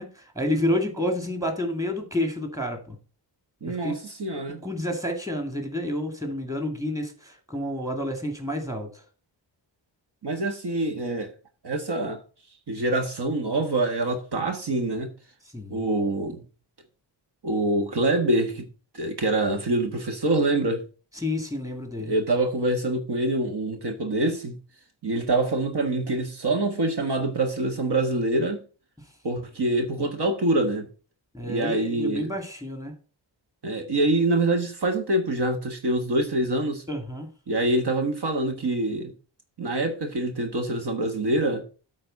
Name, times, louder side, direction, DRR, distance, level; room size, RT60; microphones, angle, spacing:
voice 1, 0.0-3.0 3.7-4.0 4.3-9.0 15.5-15.9 21.2-22.1 31.3-32.9 36.9-37.3, left 1 dB, 10° right, 2.3 m, -29 dB
voice 2, 3.6-4.6 10.2-11.3 11.6-12.2 12.7-15.1 15.7-16.4 17.4-18.7 18.9-20.8 22.0-24.6 25.0-28.6 29.2-30.9 31.5-32.3 33.6-36.8 37.5-39.1 39.6-41.6, right 2 dB, 60° right, 1.6 m, -25 dB
8.8 x 4.2 x 6.5 m
wide cardioid pair, 80°, 45 cm